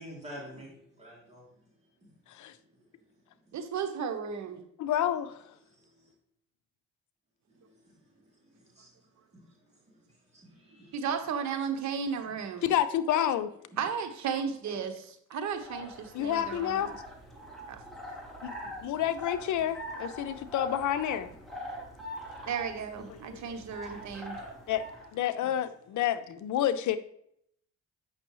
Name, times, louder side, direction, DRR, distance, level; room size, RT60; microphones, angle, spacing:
voice 1, 0.0-3.5 5.6-6.1 7.5-11.3 12.2-12.4 13.7-13.8 17.3-17.5 18.9-19.1 19.5-19.7 20.2-20.3 25.3-25.6, equal, 20° right, -5 dB, 2.9 m, -52 dB
voice 2, 3.5-4.6 10.9-12.7 13.8-17.0 17.7-17.8 22.5-24.4, right 6 dB, 65° right, 7 dB, 1.1 m, -34 dB
voice 3, 4.8-5.4 12.6-13.5 16.1-16.9 18.4-18.5 18.8-21.3 23.1-23.4 24.7-24.8 25.1-27.0, left 11 dB, 75° left, 11 dB, 0.7 m, -29 dB
sound 1, 15.4-25.1, equal, ahead, 2.2 m, -43 dB
8.1 x 6.2 x 3.1 m, 0.70 s
cardioid pair, 90°, 30 cm